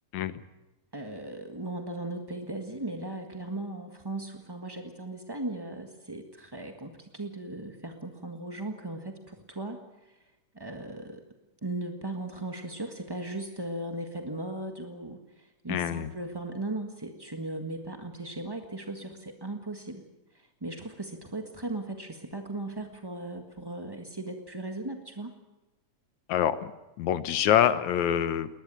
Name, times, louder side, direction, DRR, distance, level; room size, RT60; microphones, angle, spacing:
voice 1, 0.9-10.2 10.5-11.2 11.6-20.0 20.3-25.3, right 2 dB, 20° right, 4 dB, 0.6 m, -37 dB
voice 2, 15.7-16.1 26.3-26.6 27.0-28.5, left 10 dB, 75° left, 13 dB, 2.2 m, -25 dB
20.5 x 20.0 x 9.1 m, 1.0 s
omnidirectional pair, 3.5 m